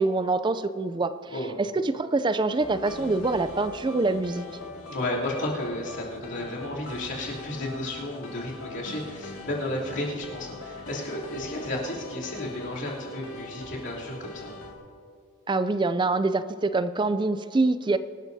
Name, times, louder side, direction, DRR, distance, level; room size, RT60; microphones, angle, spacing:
voice 1, 0.0-1.3 1.6-4.5 15.5-18.0, right 3 dB, 20° right, 12 dB, 0.4 m, -25 dB
sound 1, 2.5-14.7, left 2 dB, 85° left, 2.1 m, -42 dB
voice 2, 4.9-14.5, left 1 dB, 55° left, -5 dB, 3.0 m, -33 dB
25.0 x 12.5 x 2.7 m, 2.2 s
head